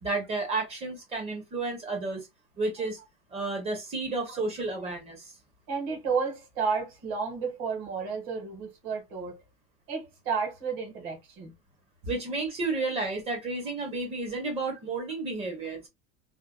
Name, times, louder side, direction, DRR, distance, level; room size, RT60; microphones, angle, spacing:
voice 1, 0.0-2.3 2.6-3.0 3.3-5.3 12.1-15.9, right 3 dB, 20° right, 0.8 m, -32 dB
voice 2, 5.7-9.4 9.9-11.5, right 5 dB, 50° right, 1.5 m, -32 dB
3.5 x 2.2 x 2.2 m
supercardioid pair, 170°, 30 cm